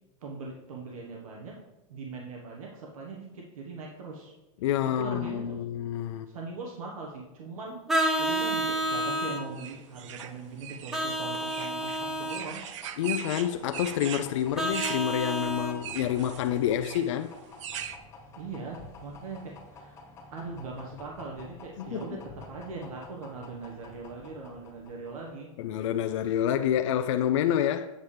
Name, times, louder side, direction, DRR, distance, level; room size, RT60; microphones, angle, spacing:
voice 1, 0.2-1.6 1.9-4.3 4.8-5.6 6.3-12.6 18.4-20.0 20.3-25.5, right 3 dB, 85° right, 1.2 m, -40 dB
voice 2, 4.6-6.3 13.0-17.3 21.8-22.0 25.6-27.9, left 10 dB, 60° left, 0.4 m, -28 dB
Vehicle horn car horn honking, 7.9-9.4 10.9-12.4 14.6-15.8, right 1 dB, ahead, 0.4 m, -29 dB
sound 1, 9.4-25.4, left 3 dB, 15° left, 1.2 m, -50 dB
sound 2, 9.5-18.0, right 9 dB, 60° right, 0.6 m, -40 dB
7.9 x 7.1 x 3.3 m
supercardioid pair, 170°, 17 cm